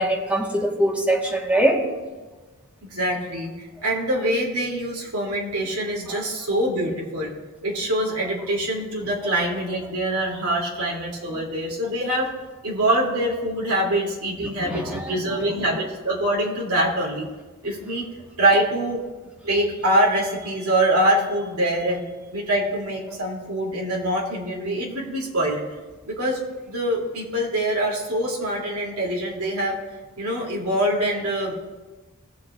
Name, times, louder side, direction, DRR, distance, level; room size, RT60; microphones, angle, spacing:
voice 1, 0.0-1.8 14.7-15.2 23.1-23.2, right 1 dB, 5° right, 0 dB, 1.3 m, -22 dB
voice 2, 2.8-7.3 7.6-12.3 12.6-17.3 17.6-18.0 18.4-19.0 19.4-22.0 22.3-25.6 26.1-26.4 26.7-29.8 30.2-31.5, right 1 dB, 80° right, -2 dB, 2.6 m, -24 dB
18.5 x 7.5 x 2.4 m, 1.2 s
head